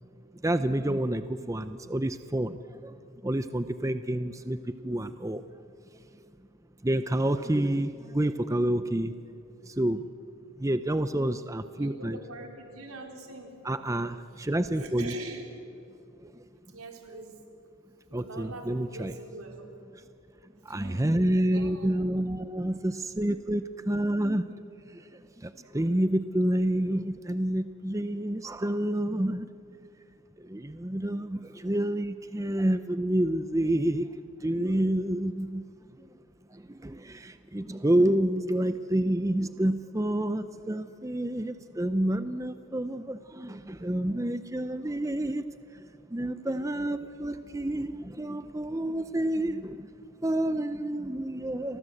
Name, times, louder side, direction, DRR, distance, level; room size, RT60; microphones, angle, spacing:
voice 1, 0.4-2.9 3.2-5.4 6.8-9.1 9.6-10.1 10.6-12.2 13.6-15.1 16.3-16.4 18.1-19.1 20.6-24.5 24.9-29.5 30.4-35.6 36.0-36.1 36.5-45.4 45.7-45.8 46.1-49.9 50.2-51.8, right 1 dB, 15° right, 11 dB, 0.6 m, -29 dB
voice 2, 11.8-13.6 14.7-15.5 16.7-17.4 18.1-19.8 20.7-21.1 21.5-22.0, right 3 dB, 85° right, 2 dB, 4.1 m, -43 dB
30.0 x 23.5 x 7.9 m, 2.7 s
head